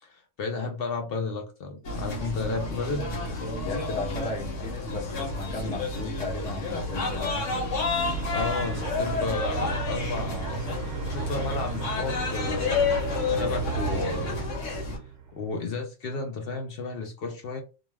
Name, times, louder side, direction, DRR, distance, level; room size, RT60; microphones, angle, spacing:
voice 1, 0.0-3.1 8.3-10.6 11.0-14.5 15.3-17.6, left 4 dB, 60° left, 0.7 m, -33 dB
sound 1, 1.8-15.0, left 3 dB, 85° left, 1.2 m, -30 dB
voice 2, 3.6-7.6, left 2 dB, 10° left, 0.3 m, -35 dB
sound 2, 8.0-15.5, right 6 dB, 65° right, 0.8 m, -35 dB
2.4 x 2.2 x 3.1 m
omnidirectional pair, 1.3 m